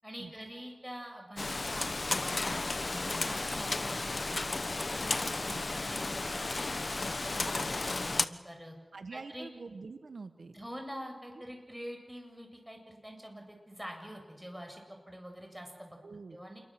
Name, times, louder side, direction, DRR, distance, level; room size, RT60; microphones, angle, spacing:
voice 1, 0.0-4.6 5.0-6.9 7.2-8.7 9.1-9.5 10.5-16.0 16.3-16.6, equal, 10° right, 3 dB, 7.9 m, -46 dB
Rain, 1.4-8.3, left 2 dB, 50° left, 1.1 m, -33 dB
voice 2, 8.9-10.5 16.0-16.4, right 4 dB, 85° right, 9 dB, 1.4 m, -45 dB
28.0 x 23.0 x 7.8 m, 1.4 s
wide cardioid pair, 60°, 0 cm